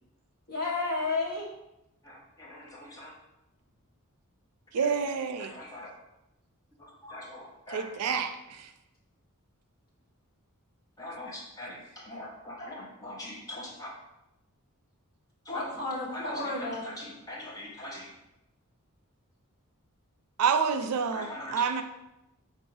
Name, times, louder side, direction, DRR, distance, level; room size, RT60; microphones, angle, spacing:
voice 1, 0.5-1.4 15.5-16.8, left 3 dB, 40° left, -6 dB, 1.4 m, -31 dB
voice 2, 2.0-3.1 4.8-4.9 5.4-5.9 6.8-8.1 11.0-13.9 15.4-15.7 16.1-18.1 21.1-21.6, left 1 dB, 15° left, -5 dB, 1.0 m, -42 dB
voice 3, 4.7-5.5 7.7-8.7 20.4-21.8, right 6 dB, 90° right, 8 dB, 0.4 m, -28 dB
4.0 x 2.6 x 4.7 m, 0.90 s
head